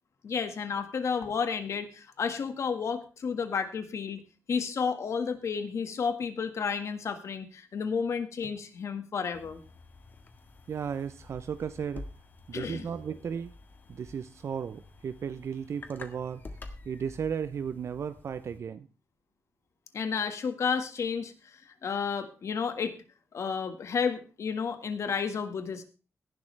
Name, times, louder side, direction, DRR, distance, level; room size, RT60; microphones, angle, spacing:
voice 1, 0.2-4.2 4.5-9.6 12.5-12.9 19.9-22.9 23.3-25.8, left 6 dB, 70° left, 9 dB, 1.6 m, -31 dB
sound 1, 9.3-18.6, left 2 dB, 40° left, 1.6 m, -49 dB
voice 2, 10.7-12.1 12.5-13.5 13.9-16.4 16.9-18.9, right 7 dB, 60° right, 12 dB, 0.6 m, -35 dB
17.5 x 11.0 x 3.3 m, 0.34 s
wide cardioid pair, 160°, 5 cm